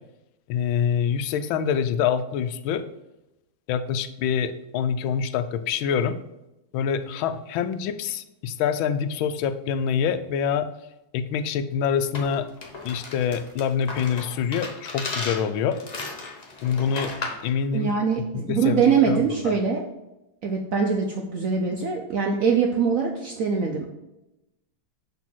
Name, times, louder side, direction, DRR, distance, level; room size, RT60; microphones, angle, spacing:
voice 1, 0.5-2.8 3.7-6.2 6.7-10.7 11.1-12.5 12.8-15.8 16.6-17.1 17.4-17.9 18.5-19.4, left 7 dB, 90° left, 10 dB, 1.4 m, -25 dB
sound 1, 12.1-17.5, left 3 dB, 50° left, 0.4 m, -35 dB
voice 2, 17.7-19.9 20.4-23.9, right 6 dB, 70° right, 1 dB, 0.8 m, -23 dB
6.1 x 3.7 x 6.0 m, 0.93 s
omnidirectional pair, 2.1 m